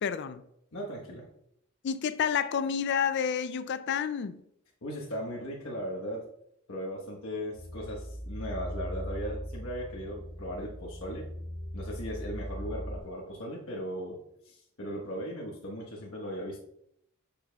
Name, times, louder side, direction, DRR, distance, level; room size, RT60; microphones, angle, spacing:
voice 1, 0.0-0.4 1.8-4.4, left 7 dB, 55° left, 0.4 m, -29 dB
voice 2, 0.7-1.3 4.8-6.2 6.7-11.3 11.7-16.6, equal, 80° left, 1.2 m, -38 dB
sound 1, 7.5-13.0, equal, 5° right, 1.8 m, -39 dB
7.2 x 6.9 x 2.3 m
head